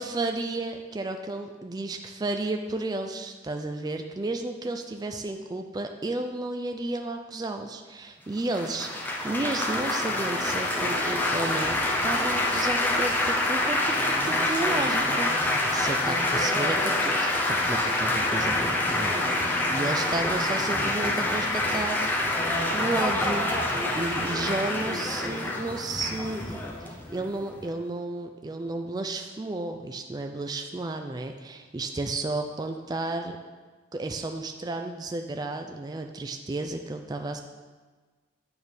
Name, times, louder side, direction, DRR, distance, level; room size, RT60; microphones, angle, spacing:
voice 1, 0.0-8.9 9.2-19.1 19.7-22.1 22.7-23.5 23.9-33.4 33.9-37.4, right 2 dB, 20° right, 5 dB, 0.3 m, -32 dB
Laughter / Applause / Chatter, 8.5-27.7, left 1 dB, 10° left, 0.8 m, -26 dB
8.7 x 3.5 x 6.2 m, 1.4 s
head